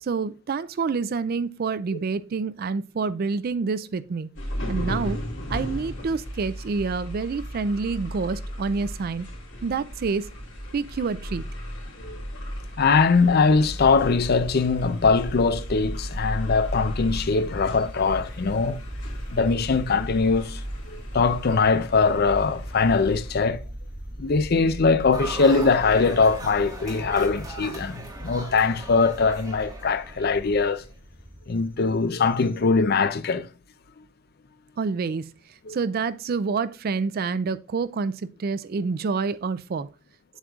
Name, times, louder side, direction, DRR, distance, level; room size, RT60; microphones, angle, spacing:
voice 1, 0.0-4.3 4.7-5.2 5.5-9.3 9.6-10.3 10.7-11.5 34.8-35.2 35.7-39.9, right 4 dB, 45° right, 0.4 m, -27 dB
sound 1, 4.3-23.3, equal, 70° left, 3.3 m, -36 dB
voice 2, 12.8-18.8 19.3-20.6 20.9-23.6 24.2-30.8 31.5-33.5 35.7-35.8, left 4 dB, 50° left, 0.5 m, -22 dB
sound 2, 13.4-32.6, equal, 10° left, 3.9 m, -38 dB
sound 3, 25.1-30.7, right 1 dB, 20° right, 1.5 m, -38 dB
8.0 x 7.6 x 2.4 m
head